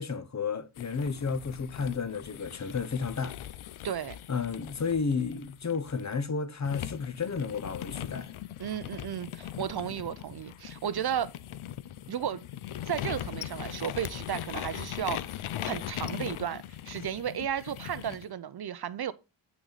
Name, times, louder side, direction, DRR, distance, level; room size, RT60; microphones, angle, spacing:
voice 1, 0.0-3.4 4.3-8.3, left 5 dB, 35° left, 0.7 m, -32 dB
sound 1, 0.8-6.2 6.6-18.3, left 11 dB, 90° left, 0.6 m, -40 dB
voice 2, 3.8-4.2 8.6-11.3 12.1-12.4 12.8-15.2 15.6-19.1, right 9 dB, 55° right, 0.5 m, -34 dB
8.7 x 6.0 x 4.0 m
wide cardioid pair, 160°, 48 cm